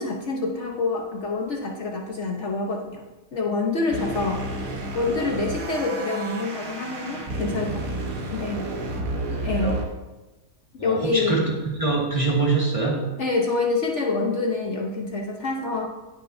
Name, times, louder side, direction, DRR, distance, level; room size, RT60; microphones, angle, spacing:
voice 1, 0.0-3.0 3.3-4.5 4.9-7.9 8.3-8.7 9.4-9.8 10.7-11.4 13.2-15.9, left 3 dB, 55° left, 0 dB, 1.2 m, -26 dB
sound 1, 3.9-9.8, right 1 dB, 65° right, 1.6 m, -31 dB
voice 2, 8.9-9.8 10.8-11.5 11.8-13.0, right 3 dB, 20° right, -3 dB, 1.8 m, -25 dB
17.5 x 6.2 x 2.7 m, 1.1 s
omnidirectional pair, 1.6 m